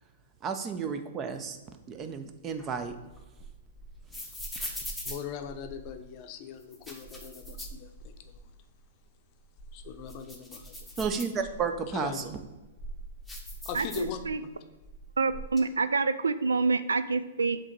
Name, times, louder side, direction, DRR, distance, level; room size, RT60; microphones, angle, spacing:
voice 1, 0.4-1.6 1.9-3.0 11.0-12.3, right 6 dB, 25° right, 8 dB, 0.7 m, -32 dB
sound 1, 2.6-6.0 6.6-8.4 8.8-8.9 9.4-11.8 12.4-14.5 14.8-15.6, equal, ahead, 1.0 m, -42 dB
voice 2, 5.0-8.4 9.7-10.9 11.9-12.3 13.6-14.5, left 7 dB, 40° left, 6 dB, 0.6 m, -40 dB
voice 3, 13.7-14.4 15.2-17.6, right 4 dB, 85° right, 13 dB, 0.3 m, -27 dB
7.5 x 3.0 x 4.5 m, 1.1 s
hypercardioid pair, 115°, 0 cm